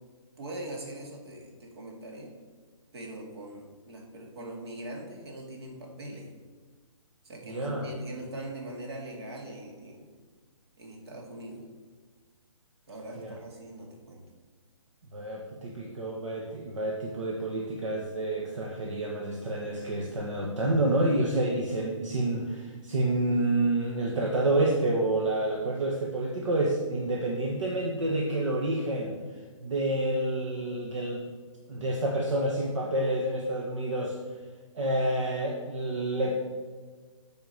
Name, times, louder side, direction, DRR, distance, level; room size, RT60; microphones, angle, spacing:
voice 1, 0.4-2.3 2.9-6.3 7.2-10.1 10.8-11.6 12.9-14.2, right 1 dB, 50° right, 1 dB, 2.3 m, -41 dB
voice 2, 7.5-7.9 13.2-13.3 15.1-29.2 29.6-31.3 31.7-34.2 34.7-36.3, right 1 dB, 65° right, -1 dB, 1.4 m, -28 dB
8.1 x 5.1 x 6.4 m, 1.5 s
hypercardioid pair, 160°, 17 cm